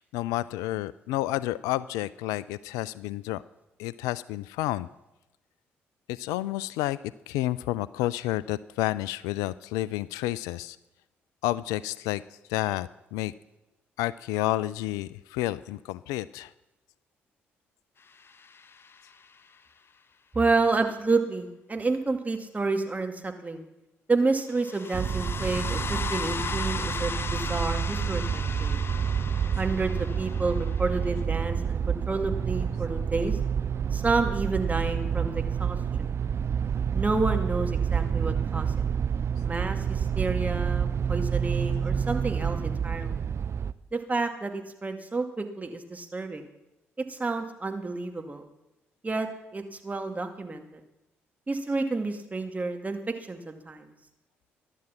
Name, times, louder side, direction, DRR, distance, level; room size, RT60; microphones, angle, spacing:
voice 1, 0.0-3.4 3.8-4.9 6.1-7.0 7.3-10.8 11.4-12.2 12.5-13.3 14.0-16.5, left 16 dB, 70° left, 18 dB, 0.4 m, -30 dB
sound 1, 18.2-19.2 24.5-31.2, left 5 dB, 40° left, 1.2 m, -37 dB
voice 2, 20.3-23.7 24.1-28.8 29.6-33.4 33.9-36.1 36.9-38.7 39.4-43.2 43.9-46.5 47.1-48.5 49.0-49.3 49.5-50.7 51.5-53.0 53.3-53.9, right 3 dB, 25° right, 5 dB, 2.3 m, -30 dB
sound 2, 24.9-43.7, right 7 dB, 45° right, 0.5 m, -28 dB
15.0 x 11.0 x 5.8 m, 0.97 s
figure-of-eight pair, 40°, 6 cm